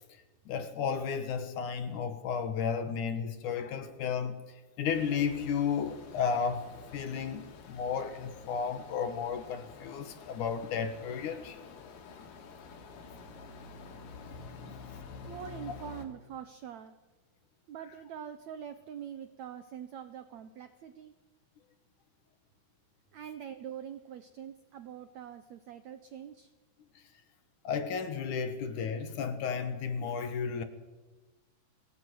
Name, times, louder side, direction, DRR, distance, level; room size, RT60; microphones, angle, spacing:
voice 1, 0.1-11.6 27.6-30.6, left 6 dB, 60° left, 2.5 m, -33 dB
sound 1, 4.9-16.0, left 5 dB, 90° left, 4.3 m, -49 dB
voice 2, 15.2-16.9 17.7-21.1 23.1-26.5, right 9 dB, 75° right, 1.6 m, -44 dB
21.5 x 17.5 x 9.4 m
omnidirectional pair, 4.4 m